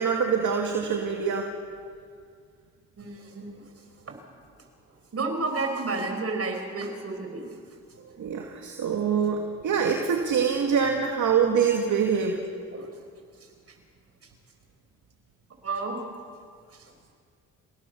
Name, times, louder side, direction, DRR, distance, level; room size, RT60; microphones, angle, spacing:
voice 1, 0.0-1.5 8.2-12.4, right 6 dB, 60° right, 2 dB, 2.3 m, -25 dB
voice 2, 3.0-3.6 5.1-7.5 8.0-8.1 12.7-12.9 15.6-16.0, right 3 dB, 45° right, 4 dB, 5.8 m, -31 dB
29.5 x 17.5 x 7.1 m, 2.1 s
supercardioid pair, 65°, 33 cm